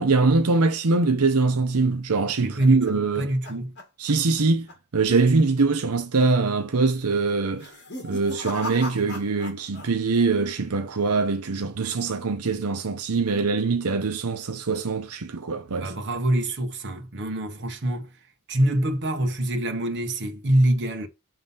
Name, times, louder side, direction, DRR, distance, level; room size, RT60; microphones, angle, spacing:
voice 1, 0.0-3.3 4.0-4.7 4.9-7.7 8.0-15.9, right 3 dB, 80° right, 0.8 m, -23 dB
sound 1, 1.9-4.4 4.7-5.0 5.3-5.4 6.2-6.6 7.5-9.9 10.2-10.7, left 1 dB, 50° left, 2.0 m, -39 dB
voice 2, 2.4-3.7 15.8-18.1 18.5-21.1, right 1 dB, 55° right, 1.1 m, -25 dB
5.4 x 3.8 x 5.4 m
head